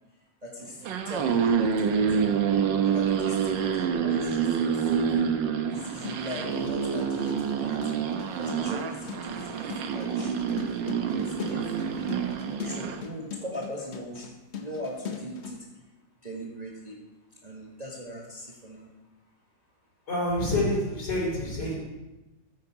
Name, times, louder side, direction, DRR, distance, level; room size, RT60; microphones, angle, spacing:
voice 1, 0.4-2.4 2.8-5.1 5.7-7.8 8.4-9.7 9.9-11.8 12.6-15.6 16.2-17.0 17.4-18.9, equal, 25° right, -3 dB, 1.4 m, -40 dB
sound 1, 0.7-13.0, right 7 dB, 80° right, 1.6 m, -27 dB
sound 2, 5.8-15.6, left 7 dB, 45° left, 1.0 m, -41 dB
voice 2, 20.1-21.7, left 1 dB, 60° left, -4 dB, 4.0 m, -27 dB
14.0 x 6.6 x 4.8 m, 1.0 s
omnidirectional pair, 2.0 m